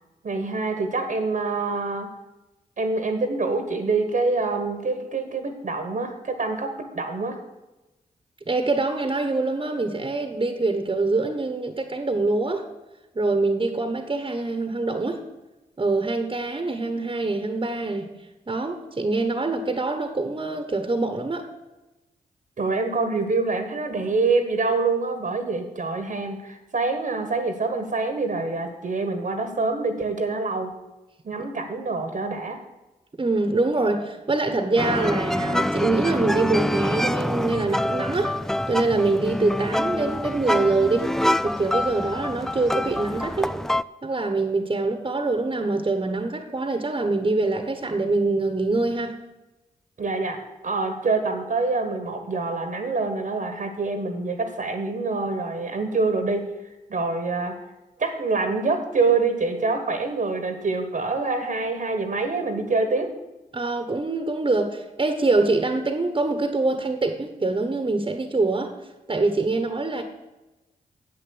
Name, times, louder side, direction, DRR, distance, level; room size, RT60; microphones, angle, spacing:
voice 1, 0.2-2.1 2.8-7.4 22.6-30.7 31.2-32.6 50.0-56.5 56.9-57.6 58.0-63.1, right 3 dB, 55° right, 7 dB, 1.3 m, -26 dB
voice 2, 8.5-12.7 13.1-15.2 15.8-18.1 18.5-21.5 33.2-38.4 38.7-41.1 41.4-43.6 44.0-49.2 63.5-68.7 69.1-70.0, right 3 dB, 30° right, 7 dB, 1.2 m, -24 dB
sound 1, 34.8-43.8, left 1 dB, 5° left, 0.3 m, -26 dB
7.8 x 6.8 x 7.9 m, 1.0 s
supercardioid pair, 40°, 16 cm